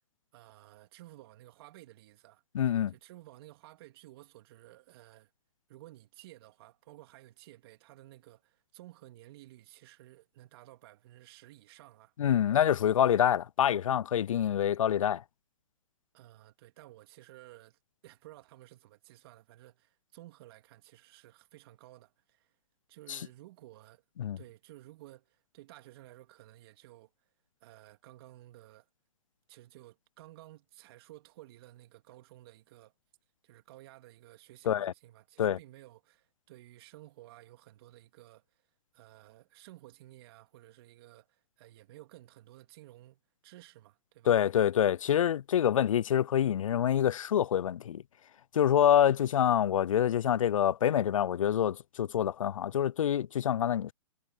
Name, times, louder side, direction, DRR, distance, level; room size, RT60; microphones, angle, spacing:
voice 1, 0.3-2.4 2.9-5.3 5.7-12.1 16.1-22.5 22.9-24.0 24.4-27.3 27.6-28.9 29.5-32.9 33.4-38.6 38.9-44.4, right 16 dB, 50° right, 2.7 m, -54 dB
voice 2, 2.5-2.9 12.2-15.2 23.1-23.2 24.2-24.4 34.7-34.9 35.4-35.6 44.3-48.0 48.5-53.9, left 10 dB, 85° left, 0.4 m, -26 dB
hypercardioid pair, 135°, 17 cm